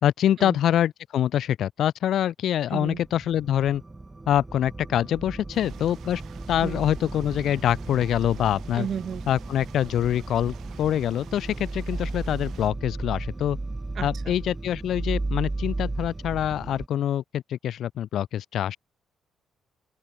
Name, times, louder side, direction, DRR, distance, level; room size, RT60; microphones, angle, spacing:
voice 1, 0.0-3.8 4.3-6.2 6.5-8.9 9.3-13.6 14.0-18.8, left 11 dB, 70° left, 0.5 m, -25 dB
sound 1, 2.8-16.9, right 2 dB, 15° right, 0.7 m, -35 dB
sound 2, 5.5-12.7, right 11 dB, 70° right, 3.4 m, -49 dB
voice 2, 8.7-9.2 14.0-14.1, right 8 dB, 55° right, 0.9 m, -32 dB
cardioid pair, 90°, 0 cm